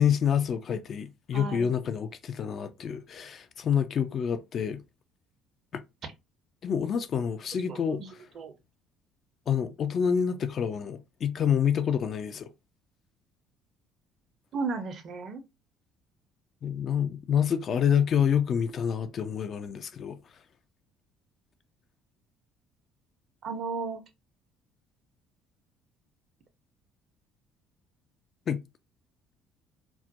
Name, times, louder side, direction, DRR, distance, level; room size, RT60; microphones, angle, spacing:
voice 1, 0.0-4.8 5.7-5.8 6.6-8.0 9.5-12.5 16.6-20.2 28.5-28.6, left 8 dB, 50° left, 0.3 m, -27 dB
voice 2, 1.3-1.7 7.7-8.1 8.3-8.5 14.5-15.4 23.4-24.0, right 4 dB, 50° right, 0.5 m, -34 dB
2.2 x 2.1 x 2.7 m
hypercardioid pair, 55°, 0 cm